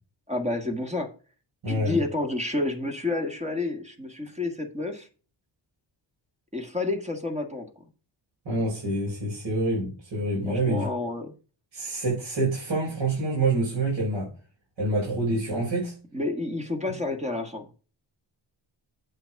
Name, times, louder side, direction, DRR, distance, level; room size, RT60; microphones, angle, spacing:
voice 1, 0.3-1.1 1.7-5.1 6.5-7.7 10.5-11.3 16.1-17.8, left 2 dB, 15° right, 5 dB, 1.5 m, -30 dB
voice 2, 1.6-2.0 8.4-10.9 11.7-14.3 14.8-15.9, right 2 dB, 70° right, -5 dB, 4.7 m, -27 dB
8.1 x 5.9 x 4.6 m, 0.36 s
wide cardioid pair, 140°, 46 cm